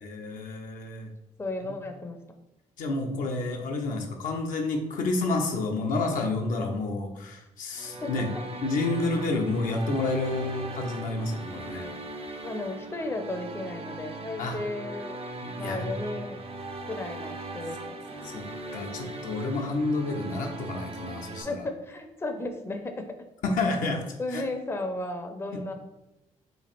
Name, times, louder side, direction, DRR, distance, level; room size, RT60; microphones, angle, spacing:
voice 1, 0.0-1.1 1.6-1.7 2.8-8.3 8.6-11.9 14.4-14.6 15.4-15.9 18.2-18.5 18.7-21.7 23.4-24.4, left 2 dB, 70° left, 2 dB, 0.7 m, -30 dB
voice 2, 1.4-2.2 8.0-8.1 12.4-15.2 15.6-16.4 16.9-18.0 21.4-23.2 24.2-25.7, left 2 dB, 15° left, 5 dB, 0.5 m, -34 dB
sound 1, 7.7-21.4, right 2 dB, 40° right, 0.5 m, -39 dB
3.2 x 2.4 x 4.2 m, 0.93 s
supercardioid pair, 55°, 15 cm